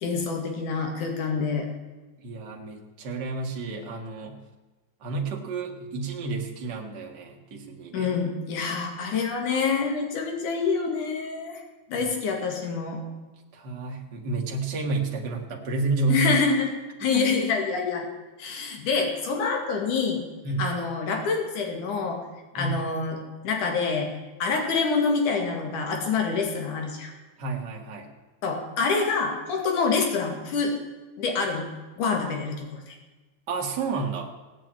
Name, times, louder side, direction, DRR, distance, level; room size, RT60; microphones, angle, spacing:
voice 1, 0.0-1.7 7.9-11.6 11.9-13.0 16.1-16.7 17.0-18.0 18.4-20.2 20.6-22.2 22.6-23.2 23.4-24.1 24.4-27.1 28.4-30.7 31.2-31.7 32.0-33.0, left 5 dB, 85° left, 2 dB, 3.7 m, -26 dB
voice 2, 2.2-4.4 5.0-8.1 13.5-16.4 17.1-17.3 20.4-20.7 22.5-22.8 27.4-28.1 33.5-34.3, right 4 dB, 35° right, 1 dB, 2.2 m, -30 dB
17.0 x 9.1 x 8.9 m, 1.2 s
omnidirectional pair, 3.5 m